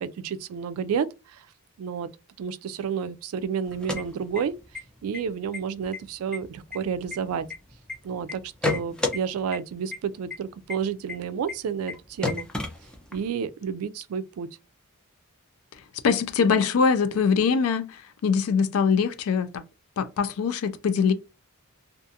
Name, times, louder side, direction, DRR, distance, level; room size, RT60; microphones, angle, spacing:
voice 1, 0.0-1.5 1.8-2.1 2.4-4.5 5.0-7.5 8.0-12.5 13.1-14.5, right 7 dB, 75° right, 0.3 m, -30 dB
sound 1, 3.7-4.8 5.1-5.2 5.5-6.0 6.3-7.9 8.3-9.2 9.5-9.6 9.9-10.0 10.3-10.4 10.7-10.8 11.1-11.2 11.5-11.6 11.9-12.0 12.2-13.3, left 3 dB, 5° left, 0.4 m, -30 dB
voice 2, 16.0-19.6 20.0-21.1, left 5 dB, 70° left, 0.4 m, -23 dB
2.5 x 2.4 x 2.6 m
head